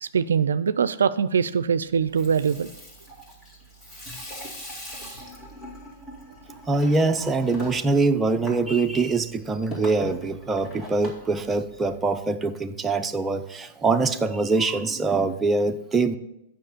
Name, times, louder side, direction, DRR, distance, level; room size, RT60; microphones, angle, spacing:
voice 1, 0.0-2.7, right 6 dB, 85° right, 15 dB, 0.3 m, -23 dB
Water tap faucet / Sink (filling or washing), 2.0-12.2, left 1 dB, 25° left, 2.3 m, -42 dB
voice 2, 6.7-16.2, right 3 dB, 15° right, 6 dB, 0.6 m, -23 dB
7.6 x 5.7 x 6.7 m, 0.88 s
hypercardioid pair, 120°, 0 cm